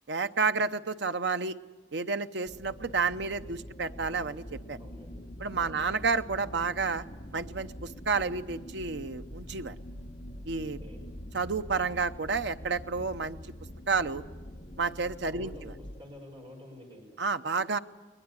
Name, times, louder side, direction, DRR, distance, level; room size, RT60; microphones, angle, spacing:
voice 1, 0.1-1.6 1.9-4.8 5.4-7.0 7.3-9.7 10.5-10.8 11.3-13.4 13.9-14.2 14.8-15.7 17.2-17.8, right 4 dB, 65° right, 10 dB, 0.8 m, -30 dB
sound 1, 2.4-16.0, equal, 35° left, 1.3 m, -45 dB
voice 2, 4.8-5.1 5.6-6.0 10.8-11.0 15.3-15.7 16.0-17.2, left 1 dB, 25° right, 0 dB, 5.9 m, -48 dB
21.0 x 20.5 x 9.8 m, 1.3 s
head